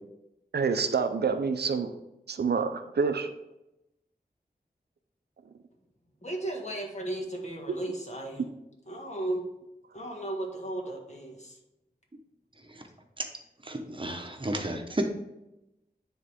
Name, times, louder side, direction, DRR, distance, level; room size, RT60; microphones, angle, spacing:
voice 1, 0.5-2.0 2.3-3.3 7.7-7.8, right 5 dB, 90° right, 9 dB, 0.5 m, -27 dB
voice 2, 6.2-8.5 8.9-9.4 9.9-11.6, right 1 dB, 45° left, 0 dB, 1.6 m, -35 dB
voice 3, 13.6-15.1, right 1 dB, 30° right, 4 dB, 0.9 m, -32 dB
9.7 x 3.7 x 3.5 m, 0.91 s
wide cardioid pair, 70°, 16 cm